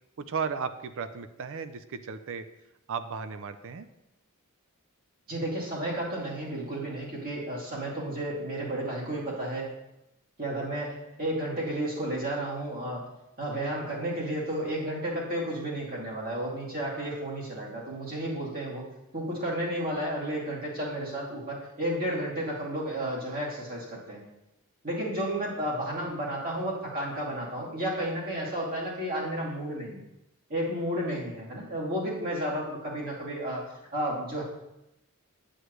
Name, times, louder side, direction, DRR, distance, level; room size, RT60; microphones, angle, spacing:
voice 1, 0.2-2.4 2.9-3.9, right 6 dB, 60° right, 11 dB, 0.5 m, -35 dB
voice 2, 5.3-9.7 10.4-13.0 13.4-18.8 19.1-24.2 24.8-30.0 30.5-33.6 33.9-34.4, right 1 dB, 45° right, -5 dB, 2.6 m, -32 dB
8.0 x 8.0 x 3.1 m, 0.91 s
head